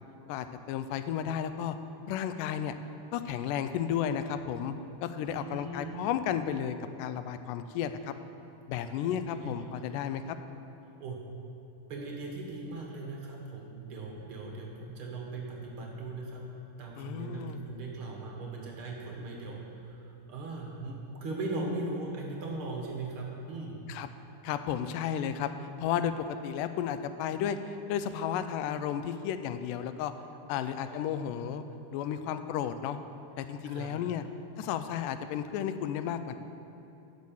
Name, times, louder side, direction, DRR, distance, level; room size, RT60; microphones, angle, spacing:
voice 1, 0.3-1.8 2.1-2.7 3.1-4.8 5.0-8.1 8.7-10.4 17.0-17.6 23.9-24.1 24.4-30.1 30.5-31.6 31.9-33.0 33.4-34.3 34.6-36.4, left 9 dB, 90° left, 10 dB, 2.2 m, -33 dB
voice 2, 5.3-5.9 8.8-8.9 9.3-9.7 9.9-10.0 11.0-11.2 11.9-16.4 16.8-20.0 20.3-23.7 30.9-31.0 33.6-33.9, right 2 dB, 60° right, -1 dB, 1.5 m, -39 dB
10.5 x 6.4 x 7.1 m, 2.9 s
omnidirectional pair, 3.7 m